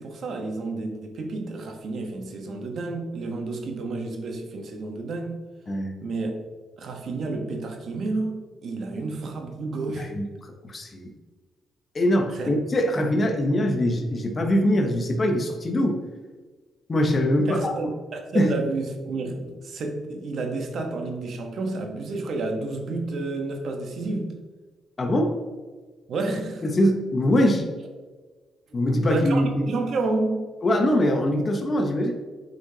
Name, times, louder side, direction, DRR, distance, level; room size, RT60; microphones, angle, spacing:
voice 1, 0.0-5.4 6.0-6.3 6.8-10.1 12.3-12.5 17.4-24.4 26.1-26.7 29.0-30.5, right 3 dB, 60° right, 3 dB, 1.0 m, -30 dB
voice 2, 10.6-11.1 11.9-16.0 16.9-17.9 18.3-18.5 25.0-25.4 26.6-27.7 28.7-29.7 30.6-32.1, left 1 dB, 35° left, 3 dB, 0.8 m, -22 dB
8.2 x 4.5 x 2.8 m, 1.4 s
cardioid pair, 90°, 0 cm